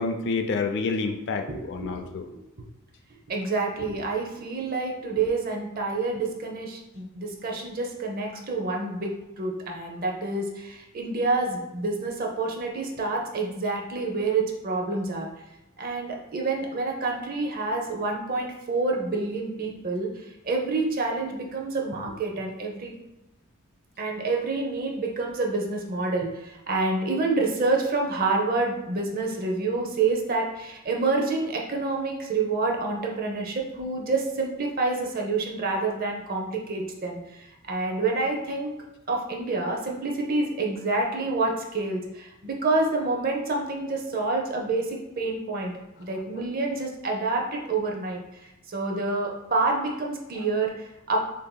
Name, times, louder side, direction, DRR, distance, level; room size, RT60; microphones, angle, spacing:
voice 1, 0.0-2.3, left 4 dB, 55° left, 6 dB, 0.4 m, -28 dB
voice 2, 1.5-2.4 3.3-9.1 9.4-15.3 15.8-20.1 20.4-23.0 24.0-38.7 39.1-48.2 48.7-51.2, right 3 dB, 45° right, 1 dB, 0.6 m, -28 dB
6.6 x 2.8 x 2.2 m, 0.94 s
head